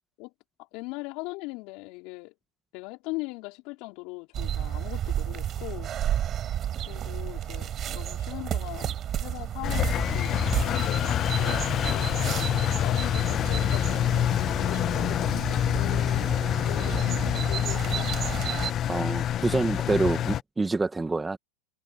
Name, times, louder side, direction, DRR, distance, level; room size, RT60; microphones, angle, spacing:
voice 1, 0.7-2.3 2.7-5.9 6.8-12.2 12.8-18.6, left 25 dB, 60° left, 4.7 m, -40 dB
sound 1, 4.3-18.7, right 10 dB, 35° right, 5.6 m, -32 dB
Engine, 9.6-20.4, left 11 dB, 40° left, 0.4 m, -26 dB
voice 2, 18.9-21.4, right 3 dB, 15° right, 1.8 m, -27 dB
hypercardioid pair, 105°, 0 cm